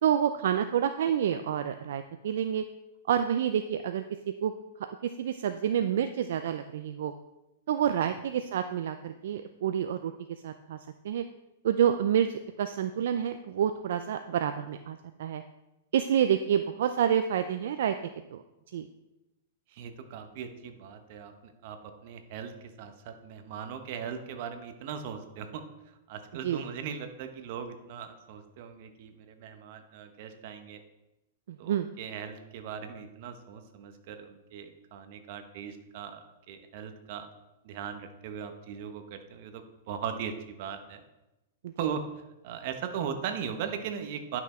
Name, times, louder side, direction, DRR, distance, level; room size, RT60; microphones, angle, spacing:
voice 1, 0.0-2.6 3.1-4.0 4.4-4.5 5.2-7.1 7.7-10.1 10.4-10.8 11.0-11.2 11.6-12.3 12.6-15.4 15.9-17.9 18.3-18.4 18.7-18.9 26.4-26.6 31.6-31.9, right 9 dB, 70° right, 9 dB, 0.5 m, -28 dB
voice 2, 19.7-22.5 22.8-30.8 31.6-37.3 37.6-41.0 41.8-42.0 42.4-44.4, right 7 dB, 50° right, 7 dB, 1.1 m, -39 dB
10.5 x 6.0 x 4.3 m, 0.98 s
hypercardioid pair, 150°, 0 cm